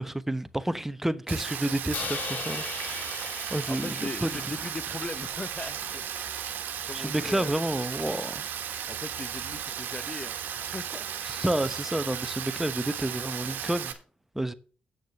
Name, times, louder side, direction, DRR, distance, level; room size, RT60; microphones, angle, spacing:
voice 1, 0.0-3.2 3.5-4.3 6.9-8.4 11.2-13.9 14.3-14.5, right 1 dB, 10° right, 0.9 m, -30 dB
Rain, 1.3-13.9, right 9 dB, 75° right, 1.4 m, -35 dB
Crash cymbal, 1.9-6.1, left 6 dB, 60° left, 1.8 m, -39 dB
voice 2, 3.7-6.4 6.8-7.5 8.9-11.1, left 3 dB, 30° left, 0.7 m, -39 dB
8.8 x 6.4 x 6.6 m
supercardioid pair, 55°, 3 cm